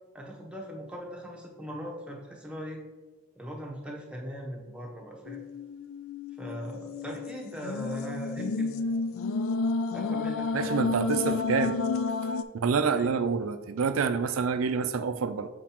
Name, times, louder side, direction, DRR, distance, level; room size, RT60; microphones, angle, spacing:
voice 1, 0.1-2.8 3.4-5.4 6.4-9.1 9.9-10.8 12.8-13.1, equal, 5° right, -1 dB, 0.8 m, -40 dB
sound 1, 5.3-12.4, left 3 dB, 75° left, 0.4 m, -31 dB
voice 2, 10.5-11.8 12.5-15.5, right 5 dB, 80° right, 10 dB, 0.4 m, -27 dB
7.2 x 4.6 x 2.9 m, 1.2 s
head